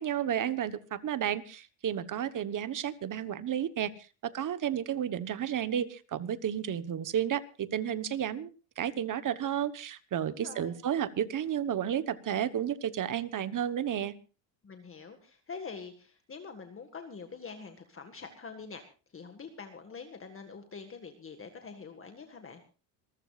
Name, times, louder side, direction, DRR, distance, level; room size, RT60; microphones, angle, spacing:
voice 1, 0.0-3.9 4.2-8.5 8.8-14.1, right 9 dB, 40° right, 14 dB, 1.2 m, -32 dB
voice 2, 10.3-10.8 14.6-18.8 19.1-22.6, left 5 dB, 25° left, 6 dB, 1.8 m, -45 dB
26.5 x 14.5 x 2.5 m, 0.34 s
cardioid pair, 110°, 50 cm